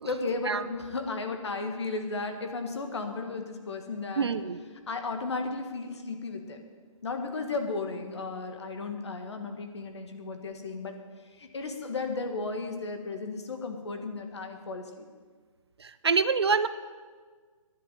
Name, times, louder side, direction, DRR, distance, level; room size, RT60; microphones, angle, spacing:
voice 1, 0.0-4.3 4.9-6.6 7.0-11.0 11.4-15.0, left 3 dB, 55° left, 5 dB, 1.7 m, -34 dB
voice 2, 4.2-4.6 15.8-16.7, right 5 dB, 50° right, 13 dB, 0.5 m, -26 dB
10.5 x 7.9 x 9.1 m, 1.5 s
hypercardioid pair, 175°, 18 cm